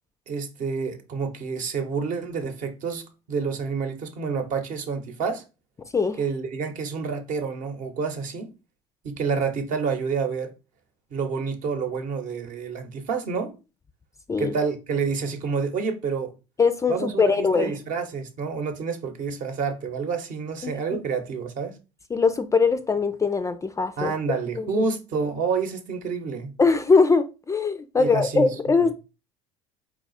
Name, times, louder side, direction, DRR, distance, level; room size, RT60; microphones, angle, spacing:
voice 1, 0.3-5.4 6.2-8.5 9.0-10.5 11.1-13.6 14.4-16.3 16.9-21.8 24.0-26.5 28.0-28.5, right 5 dB, 50° right, 0.9 m, -28 dB
voice 2, 16.6-17.7 20.6-21.0 22.1-24.1 24.6-24.8 26.6-28.9, left 4 dB, 20° left, 0.4 m, -22 dB
4.0 x 2.4 x 4.0 m
hypercardioid pair, 75°, 17 cm